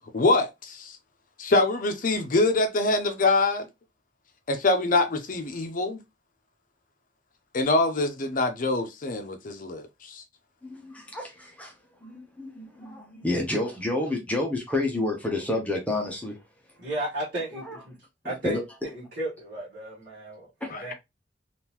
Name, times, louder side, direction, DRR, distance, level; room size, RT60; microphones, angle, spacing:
voice 1, 0.1-1.0 1.4-3.7 4.5-6.0 7.5-10.2 20.7-20.8, left 2 dB, 50° left, 0.6 m, -24 dB
voice 2, 10.6-11.7 12.0-16.4 17.5-17.8 18.4-18.6 20.6-20.7, left 2 dB, 10° left, 0.7 m, -29 dB
voice 3, 16.8-17.9 18.2-18.6 18.8-20.9, right 1 dB, 50° right, 1.3 m, -34 dB
3.6 x 2.5 x 2.9 m
head